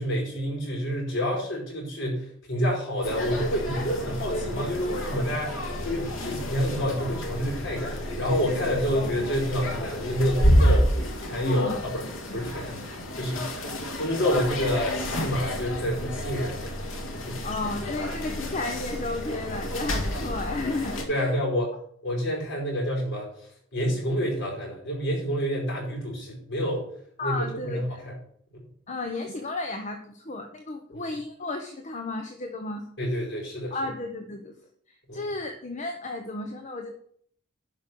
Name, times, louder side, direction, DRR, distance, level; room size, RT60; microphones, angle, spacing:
voice 1, 0.0-10.9 11.2-12.0 12.3-12.8 13.1-16.7 17.2-17.4 21.1-21.7 22.0-26.9 27.2-28.2 30.9-31.0 33.0-33.8 35.1-35.3, equal, 65° left, -2 dB, 4.9 m, -28 dB
sound 1, 3.0-21.0, equal, 90° left, 2.1 m, -29 dB
voice 2, 11.4-11.7 17.4-21.3 27.2-28.0 28.9-32.9 33.7-34.6 35.1-36.9, left 2 dB, 40° left, 5 dB, 0.9 m, -33 dB
11.5 x 5.4 x 6.2 m, 0.62 s
head